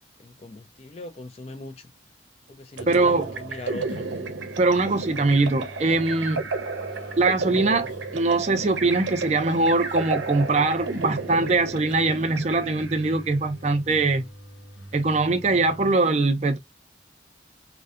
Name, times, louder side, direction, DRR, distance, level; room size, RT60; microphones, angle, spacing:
voice 1, 0.2-1.9 2.5-4.1, left 2 dB, 35° left, 0.4 m, -40 dB
sound 1, 2.7-15.9, right 1 dB, 70° left, 0.8 m, -44 dB
sound 2, 2.8-13.2, right 3 dB, 85° right, 0.6 m, -33 dB
voice 2, 2.9-3.3 4.6-6.4 7.2-14.3 14.9-16.6, right 3 dB, 35° right, 0.4 m, -22 dB
2.6 x 2.1 x 2.4 m
head